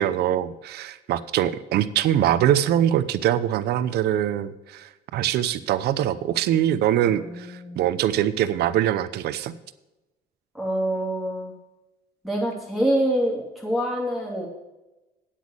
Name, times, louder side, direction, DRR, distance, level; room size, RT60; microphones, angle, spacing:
voice 1, 0.0-9.5, right 11 dB, 75° right, 13 dB, 0.8 m, -23 dB
voice 2, 7.0-7.8 10.5-11.5 12.2-14.5, right 1 dB, ahead, -4 dB, 2.8 m, -26 dB
9.2 x 8.4 x 6.5 m, 1.0 s
cardioid pair, 110°, 17 cm